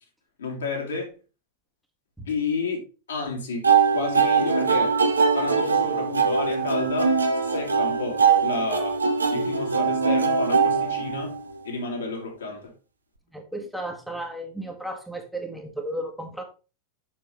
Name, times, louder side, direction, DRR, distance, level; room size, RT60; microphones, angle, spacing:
voice 1, 0.4-1.1 2.3-2.8 3.1-3.7 3.9-5.0 5.3-7.2 7.4-9.0 9.3-11.3 11.6-12.7, left 3 dB, 65° left, 2.5 m, -31 dB
sound 1, 3.6-11.6, right 5 dB, 75° right, 1.0 m, -22 dB
voice 2, 13.3-16.4, right 1 dB, ahead, 1.4 m, -34 dB
7.3 x 6.3 x 3.3 m
figure-of-eight pair, 90°, 0 cm